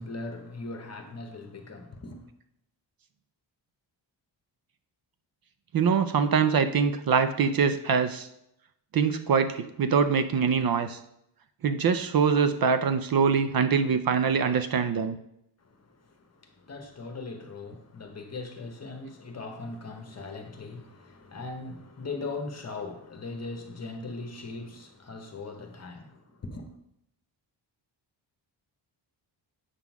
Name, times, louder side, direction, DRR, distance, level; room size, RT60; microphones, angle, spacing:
voice 1, 0.0-2.3 15.6-26.8, left 3 dB, 35° left, 1.0 m, -40 dB
voice 2, 5.7-8.3 8.9-11.0 11.6-15.2, right 6 dB, 50° right, 0.5 m, -24 dB
8.2 x 3.8 x 5.9 m
wide cardioid pair, 145°, 46 cm